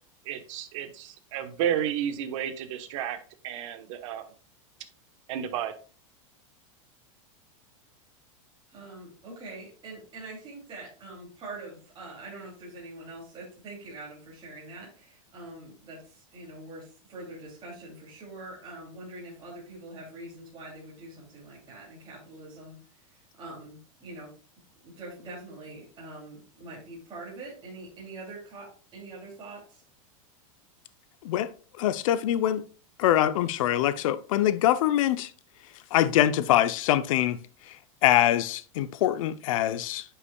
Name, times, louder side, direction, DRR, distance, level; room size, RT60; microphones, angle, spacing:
voice 1, 0.2-3.2 3.4-4.2 5.3-5.7, right 9 dB, 65° right, 1.1 m, -31 dB
voice 2, 8.7-22.8 23.1-24.3 24.8-29.8, right 2 dB, 25° right, 2.7 m, -44 dB
voice 3, 31.8-32.6 33.0-35.3 35.9-37.4 38.0-40.0, left 12 dB, 70° left, 0.6 m, -24 dB
9.5 x 5.8 x 2.3 m
supercardioid pair, 140°, 18 cm